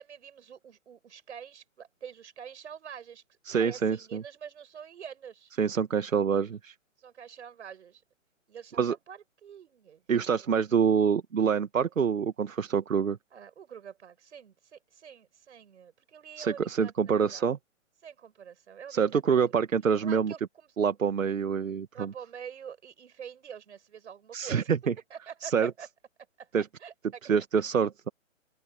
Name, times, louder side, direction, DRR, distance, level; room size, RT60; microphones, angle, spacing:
voice 1, 0.0-3.2 3.6-5.5 7.0-8.0 8.5-10.0 10.4-10.6 13.3-17.5 18.0-19.6 20.0-20.7 21.9-24.7 25.1-25.9 26.4-26.5 26.8-27.2, right 8 dB, 60° right, 7.6 m, -46 dB
voice 2, 3.5-4.2 5.6-6.7 8.8-8.9 10.1-13.2 16.4-17.6 18.9-20.3 20.8-22.1 24.3-24.9 25.4-25.7 26.5-26.7 27.3-28.1, right 6 dB, 75° right, 1.8 m, -26 dB
open air
hypercardioid pair, 150°, 39 cm